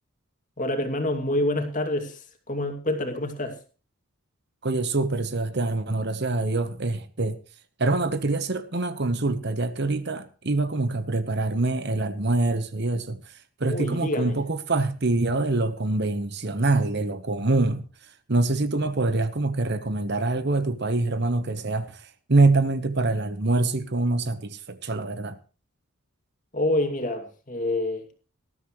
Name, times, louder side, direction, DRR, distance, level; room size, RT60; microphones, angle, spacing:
voice 1, 0.6-3.6 13.6-14.4 26.5-28.1, left 1 dB, 35° left, 2.5 m, -27 dB
voice 2, 4.6-7.4 7.8-13.2 13.6-17.8 18.3-25.4, right 2 dB, 50° right, 1.1 m, -25 dB
19.5 x 13.5 x 3.2 m
head